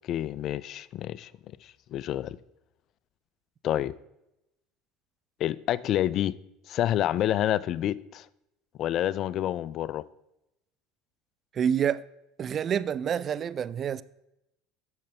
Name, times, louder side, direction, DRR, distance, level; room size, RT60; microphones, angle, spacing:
voice 1, 0.1-1.3 1.6-2.4 3.6-3.9 5.4-6.4 6.7-8.3 8.8-10.0, left 12 dB, 50° left, 0.3 m, -28 dB
voice 2, 11.5-12.0 12.4-14.0, right 8 dB, 40° right, 0.3 m, -27 dB
10.5 x 6.5 x 3.3 m
hypercardioid pair, 80°, 0 cm